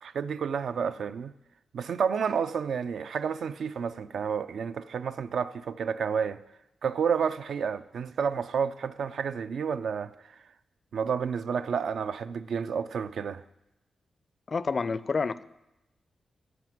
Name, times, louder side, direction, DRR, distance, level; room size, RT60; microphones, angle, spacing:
voice 1, 0.0-1.3 1.7-6.4 6.8-10.1 10.9-13.4, right 6 dB, 75° right, 0.5 m, -30 dB
voice 2, 14.5-15.5, left 4 dB, 40° left, 0.4 m, -29 dB
14.5 x 5.0 x 9.3 m
wide cardioid pair, 140°, 0 cm